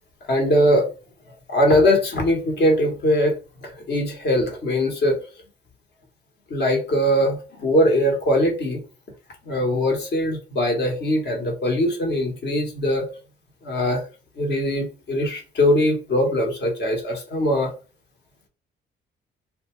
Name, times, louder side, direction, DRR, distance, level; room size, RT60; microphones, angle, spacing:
voice 1, 0.3-0.9 1.5-5.2 6.5-8.8 9.5-13.1 13.6-14.0 14.4-17.7, left 1 dB, 55° left, 1 dB, 1.1 m, -21 dB
2.6 x 2.2 x 3.0 m, 0.34 s
cardioid pair, 90°, 20 cm